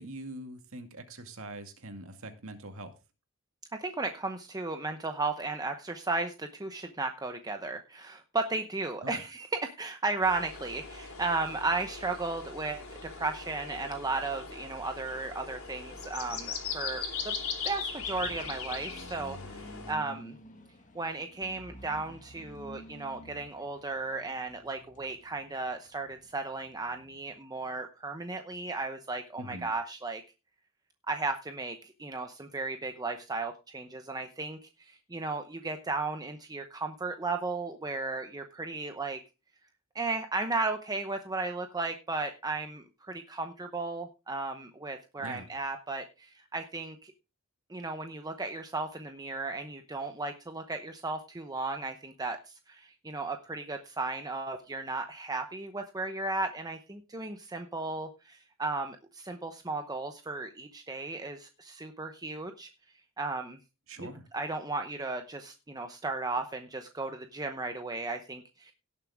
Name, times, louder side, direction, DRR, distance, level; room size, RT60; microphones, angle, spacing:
voice 1, 0.0-2.9 9.0-9.2 29.4-29.7 45.2-45.5 63.9-64.3, right 1 dB, 65° right, 6 dB, 2.2 m, -43 dB
voice 2, 3.7-17.3 17.6-20.4 20.9-30.2 31.1-39.2 39.9-47.1 47.7-62.7 63.2-63.6 64.0-64.1 64.3-68.7, right 3 dB, 15° right, 6 dB, 0.8 m, -35 dB
sound 1, 10.2-19.9, left 5 dB, 65° left, 3.4 m, -40 dB
sound 2, 10.6-27.4, equal, 35° left, 1.7 m, -53 dB
17.5 x 7.2 x 3.5 m, 0.29 s
head